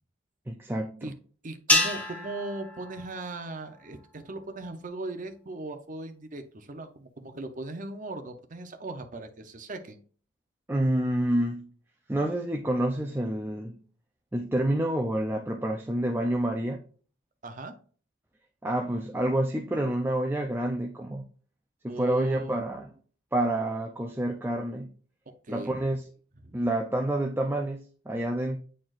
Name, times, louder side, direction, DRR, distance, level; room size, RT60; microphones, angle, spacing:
voice 1, 0.5-1.1 10.7-11.7 12.1-13.8 14.3-16.8 18.6-21.2 21.8-22.9 23.3-24.9 25.5-26.1 26.5-28.6, right 1 dB, 10° right, 0.4 m, -28 dB
voice 2, 1.4-10.0 17.4-17.7 21.9-22.6 25.4-25.7 26.4-26.5, right 2 dB, 40° right, 0.7 m, -38 dB
sound 1, 1.7-4.1, left 1 dB, 10° left, 1.1 m, -29 dB
8.9 x 4.2 x 2.5 m
head